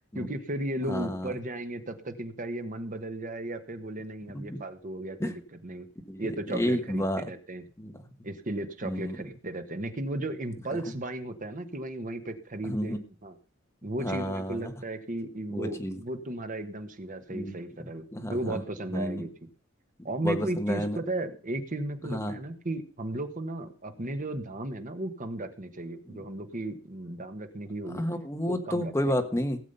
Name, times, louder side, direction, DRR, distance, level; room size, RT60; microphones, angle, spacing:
voice 1, 0.1-5.9 6.2-7.6 8.2-13.4 13.8-19.5 20.0-28.1 28.5-28.9, right 1 dB, 40° right, 8 dB, 1.3 m, -35 dB
voice 2, 0.8-1.3 4.5-4.6 5.2-5.3 6.1-6.2 6.5-7.2 7.8-7.9 8.8-9.2 12.6-13.0 14.0-14.7 15.5-16.0 17.3-17.6 18.1-18.6 18.9-19.2 20.2-21.0 22.1-22.3 26.1-26.2 27.9-29.6, equal, 15° left, 5 dB, 1.4 m, -30 dB
17.0 x 7.4 x 5.5 m, 0.39 s
head